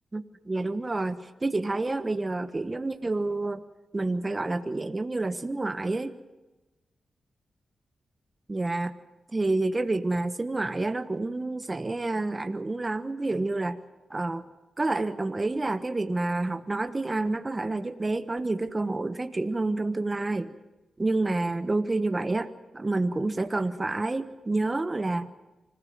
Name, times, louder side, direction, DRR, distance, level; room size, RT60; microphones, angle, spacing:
voice 1, 0.1-3.6 3.9-6.2 8.5-8.9 9.3-13.8 14.1-14.4 14.8-20.5 21.0-25.3, right 2 dB, 30° right, 9 dB, 1.3 m, -29 dB
26.0 x 16.0 x 7.7 m, 1.1 s
cardioid pair, 45°, 0 cm